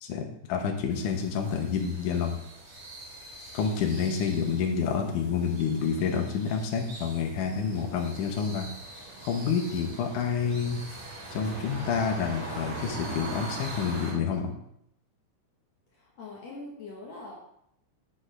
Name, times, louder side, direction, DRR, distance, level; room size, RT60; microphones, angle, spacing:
voice 1, 0.0-2.4 3.5-8.7 9.2-10.8 11.3-14.5, left 6 dB, 80° left, 2 dB, 2.5 m, -28 dB
sound 1, 0.9-14.1, right 2 dB, 60° right, 4.9 m, -42 dB
voice 2, 15.9-17.4, left 2 dB, 65° left, -3 dB, 2.4 m, -43 dB
7.9 x 7.7 x 3.3 m, 0.73 s
omnidirectional pair, 3.5 m